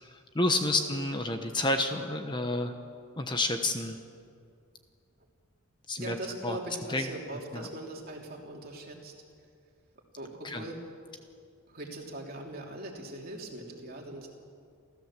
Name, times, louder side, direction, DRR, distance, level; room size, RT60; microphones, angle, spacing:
voice 1, 0.0-2.7 3.2-4.0 5.9-6.2 6.4-6.6 6.9-7.1 7.5-7.6 10.4-10.6, left 2 dB, 20° left, 6 dB, 1.0 m, -29 dB
voice 2, 0.6-1.1 6.0-9.1 9.4-9.5 10.2-10.8 11.7-14.3, right 1 dB, 45° right, 0 dB, 3.2 m, -41 dB
29.0 x 14.5 x 7.5 m, 2.3 s
head